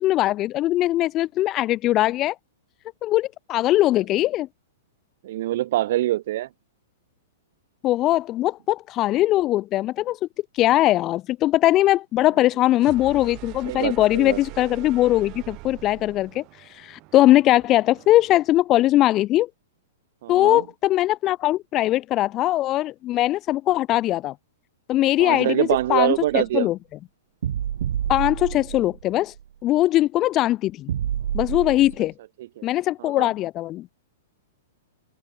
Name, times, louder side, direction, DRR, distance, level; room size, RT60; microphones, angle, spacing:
voice 1, 0.0-2.4 3.0-4.5 7.8-10.2 10.5-16.4 16.7-19.5 20.3-24.3 24.9-26.8 28.1-29.3 29.6-30.9 31.3-32.1 32.6-33.9, left 15 dB, 30° left, 0.5 m, -21 dB
voice 2, 5.2-6.5 13.7-14.4 20.2-20.6 25.2-26.7 32.6-32.7 33.0-33.3, right 14 dB, 60° right, 0.3 m, -24 dB
sound 1, 12.7-18.6, right 24 dB, 35° right, 5.8 m, -42 dB
sound 2, 25.7-26.5 27.4-29.1 29.4-29.5 30.9-32.0, right 10 dB, 75° right, 0.9 m, -29 dB
hypercardioid pair, 140°, 0 cm